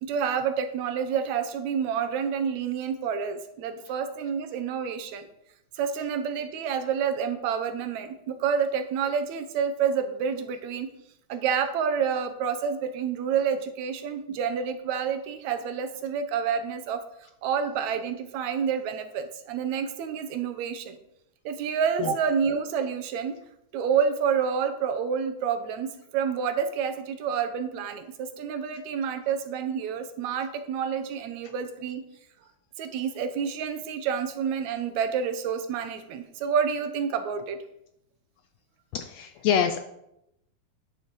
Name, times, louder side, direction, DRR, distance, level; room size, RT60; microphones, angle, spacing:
voice 1, 0.0-5.3 5.8-10.9 11.3-21.0 21.5-23.4 23.7-32.0 32.8-37.6, right 7 dB, 75° right, 9 dB, 2.0 m, -28 dB
voice 2, 38.9-39.8, left 8 dB, 80° left, 9 dB, 1.6 m, -26 dB
10.0 x 6.9 x 4.6 m, 0.80 s
omnidirectional pair, 3.4 m